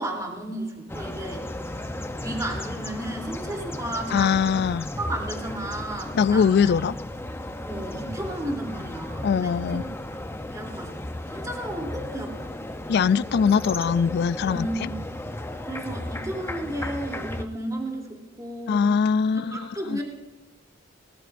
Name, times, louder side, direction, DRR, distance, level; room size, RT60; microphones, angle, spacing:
voice 1, 0.0-1.5 1.8-1.9 2.2-4.3 5.0-6.7 7.6-9.8 10.5-12.6 14.5-15.0 15.6-18.9 19.3-20.0, right 1 dB, 20° right, 0 dB, 3.1 m, -33 dB
sound 1, 0.9-17.4, left 1 dB, 10° left, 0.7 m, -35 dB
voice 2, 4.1-4.9 6.1-7.0 9.2-9.8 12.9-14.9 18.7-20.0, left 6 dB, 55° left, 19 dB, 0.3 m, -22 dB
20.5 x 19.0 x 2.6 m, 1.2 s
head